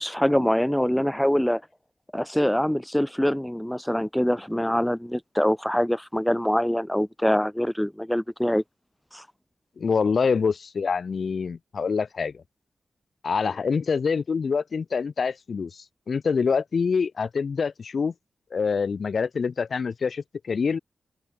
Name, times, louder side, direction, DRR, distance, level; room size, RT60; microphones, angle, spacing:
voice 1, 0.0-1.6 2.1-8.6 9.1-9.2, equal, 5° left, 3.0 m, -24 dB
voice 2, 9.8-12.4 13.2-18.1 18.5-20.8, left 5 dB, 65° left, 5.9 m, -26 dB
open air
cardioid pair, 55°, 0 cm